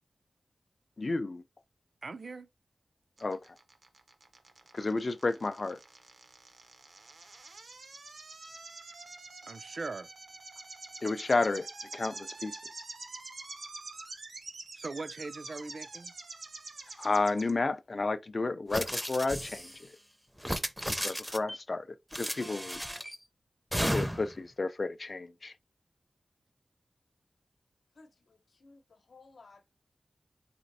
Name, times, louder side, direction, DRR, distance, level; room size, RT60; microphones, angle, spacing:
voice 1, 1.0-1.4 3.2-3.4 4.7-5.8 11.0-11.7 11.9-12.8 17.0-19.7 21.0-21.8 22.2-22.8 23.9-25.5, left 3 dB, 50° left, 0.4 m, -31 dB
voice 2, 2.0-2.5 9.5-10.1 14.7-16.1, right 3 dB, 65° right, 0.4 m, -40 dB
sound 1, 3.2-17.5, right 3 dB, 80° right, 0.7 m, -46 dB
sound 2, 18.7-19.8 20.4-21.6 22.1-23.2 23.7-24.4, equal, 5° right, 0.5 m, -34 dB
voice 3, 28.0-29.6, left 3 dB, 90° left, 0.8 m, -57 dB
4.2 x 3.9 x 2.6 m
wide cardioid pair, 75°, 0 cm